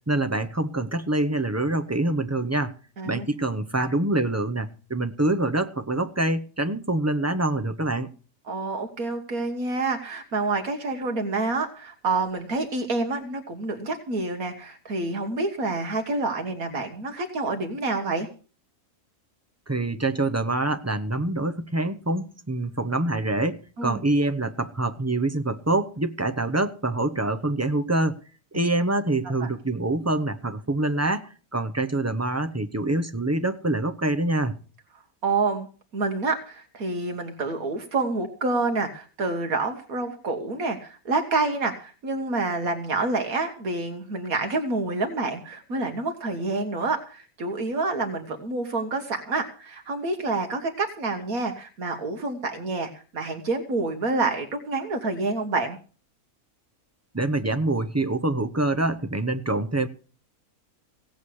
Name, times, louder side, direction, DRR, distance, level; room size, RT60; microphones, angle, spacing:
voice 1, 0.1-2.7 3.0-8.1 19.7-28.2 28.5-34.5 57.1-59.9, right 2 dB, 15° right, 0.6 m, -25 dB
voice 2, 8.5-18.3 23.8-24.0 28.5-28.7 29.4-29.5 35.2-35.7 35.9-55.8, right 3 dB, 70° right, 1.9 m, -28 dB
17.0 x 8.1 x 6.4 m
omnidirectional pair, 1.5 m